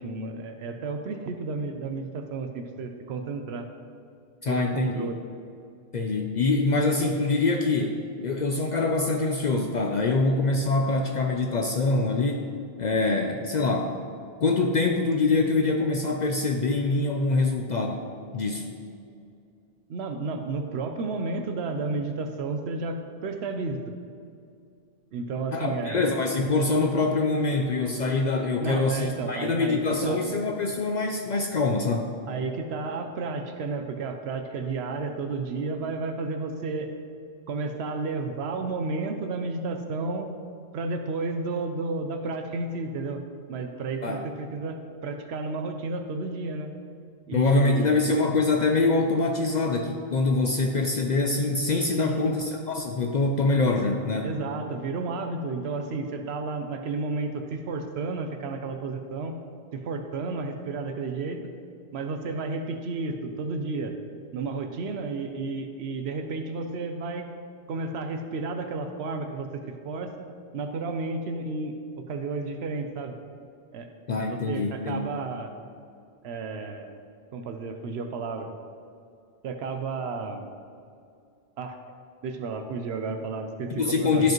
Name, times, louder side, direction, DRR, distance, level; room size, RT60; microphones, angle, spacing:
voice 1, 0.0-3.7 4.5-5.2 19.9-23.9 25.1-26.1 28.6-30.2 32.3-36.9 37.5-40.3 40.7-43.2 43.5-46.7 47.3-48.0 52.0-52.4 54.2-59.4 59.7-61.5 61.9-63.9 64.3-67.3 67.7-69.5 69.8-70.3 70.5-73.2 73.7-73.9 74.2-75.5 76.2-77.0 77.3-78.5 79.4-80.5 81.6-81.8 82.2-84.3, right 3 dB, 80° right, 6 dB, 0.9 m, -32 dB
voice 2, 4.4-5.1 5.9-12.5 12.8-14.0 14.4-18.0 18.3-18.7 25.5-32.1 44.0-44.2 47.3-54.3 74.1-75.1 83.7-84.3, left 3 dB, 55° left, 3 dB, 0.6 m, -24 dB
13.0 x 5.0 x 3.0 m, 2.4 s
omnidirectional pair, 1.1 m